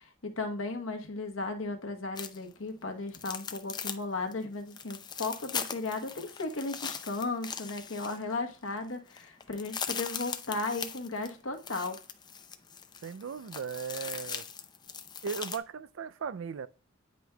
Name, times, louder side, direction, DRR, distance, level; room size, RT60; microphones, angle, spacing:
voice 1, 0.0-12.0, left 3 dB, 80° left, 1.1 m, -35 dB
sound 1, 2.2-2.5 3.1-4.0 4.3-4.4 4.7-8.4 8.8-8.9 9.1-15.6, left 6 dB, 20° left, 0.5 m, -40 dB
voice 2, 13.0-14.4 15.2-16.7, right 6 dB, 70° right, 0.4 m, -37 dB
9.2 x 5.2 x 2.3 m
head